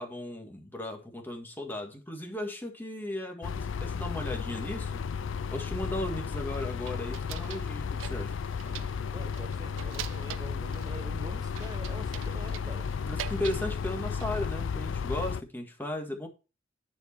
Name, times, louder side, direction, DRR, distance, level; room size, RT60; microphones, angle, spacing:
voice 1, 0.0-5.0 5.5-8.4 13.0-16.3, left 1 dB, 10° left, 1.7 m, -36 dB
sound 1, 3.4-15.4, left 6 dB, 75° left, 0.4 m, -34 dB
sound 2, 6.5-7.7 8.0-9.0 9.3-10.9 11.6-13.7 14.0-14.5, right 12 dB, 75° right, 0.4 m, -43 dB
voice 2, 9.1-12.9, right 1 dB, 20° right, 0.6 m, -44 dB
10.5 x 4.6 x 4.3 m
head